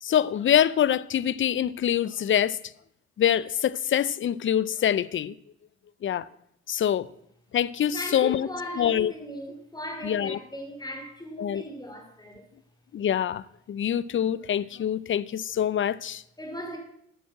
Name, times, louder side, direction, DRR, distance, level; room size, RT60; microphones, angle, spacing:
voice 1, 0.0-2.6 3.2-5.3 6.0-6.3 6.7-7.1 7.5-8.5 8.8-9.1 10.0-10.4 11.4-11.6 12.9-16.2, left 10 dB, 40° left, 0.5 m, -25 dB
voice 2, 7.9-12.4 16.4-16.8, equal, 15° left, 3.0 m, -37 dB
10.0 x 6.2 x 7.3 m
cardioid pair, 90°, 30 cm